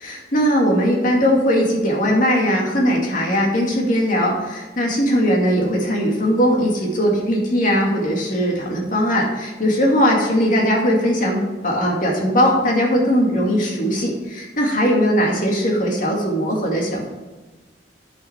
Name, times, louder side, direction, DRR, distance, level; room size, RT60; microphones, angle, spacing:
voice 1, 0.0-17.1, equal, 50° left, -1 dB, 2.2 m, -19 dB
10.5 x 5.9 x 4.5 m, 1.2 s
head